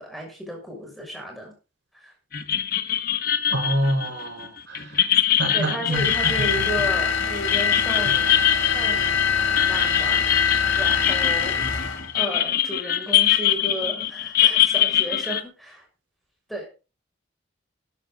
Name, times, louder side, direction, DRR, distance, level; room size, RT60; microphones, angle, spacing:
voice 1, 0.0-1.6 1.9-2.1 5.5-15.8 16.5-16.7, right 1 dB, ahead, 0 dB, 6.4 m, -34 dB
sound 1, 2.3-15.4, left 11 dB, 50° left, 1.3 m, -23 dB
voice 2, 3.5-5.1 5.4-6.7, equal, 70° right, 2 dB, 6.1 m, -27 dB
sound 2, 5.9-12.1, left 6 dB, 80° left, 4.0 m, -23 dB
13.5 x 11.5 x 3.9 m, 0.32 s
head